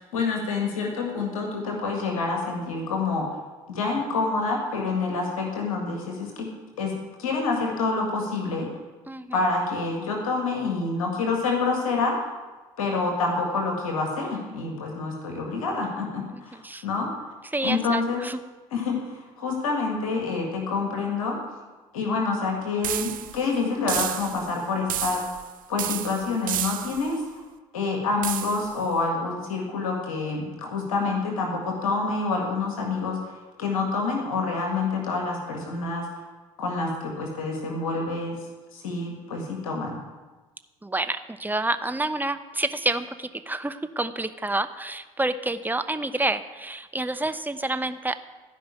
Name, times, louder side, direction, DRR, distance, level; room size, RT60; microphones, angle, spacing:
voice 1, 0.0-3.3 3.7-6.5 6.8-8.7 9.3-12.1 12.8-17.1 17.6-18.3 18.7-21.4 21.9-25.2 25.7-27.4 27.7-36.3 36.6-38.4 38.7-40.0, left 4 dB, 85° left, 0 dB, 1.9 m, -27 dB
voice 2, 16.3-16.8 17.5-18.4 40.8-48.2, right 2 dB, 10° right, 10 dB, 0.9 m, -28 dB
sound 1, 22.8-23.4 23.9-24.5 24.9-25.5 25.8-27.1 28.2-28.7, right 12 dB, 50° right, 0.7 m, -31 dB
15.5 x 5.3 x 8.4 m, 1.2 s
hypercardioid pair, 55°, 17 cm